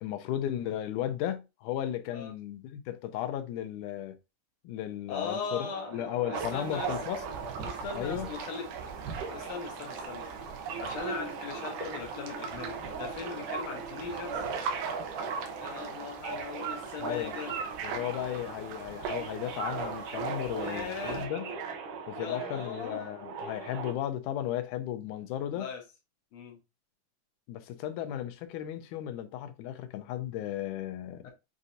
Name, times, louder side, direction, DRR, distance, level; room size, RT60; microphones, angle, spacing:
voice 1, 0.0-4.2 4.6-7.2 7.9-8.3 17.0-17.4 17.8-21.4 22.1-25.7 27.5-31.3, left 11 dB, 85° left, 2.1 m, -35 dB
voice 2, 5.1-6.9 7.6-8.7 9.2-10.2 10.8-14.4 15.4-17.5 20.5-21.3 22.1-23.0 25.6-25.8 26.3-26.6 31.2-31.3, left 6 dB, 65° left, 2.0 m, -39 dB
Subway metro underground, 5.1-23.9, right 5 dB, 70° right, 1.4 m, -40 dB
sound 1, 6.3-21.3, right 5 dB, 90° right, 2.4 m, -40 dB
7.2 x 2.7 x 2.6 m
omnidirectional pair, 3.6 m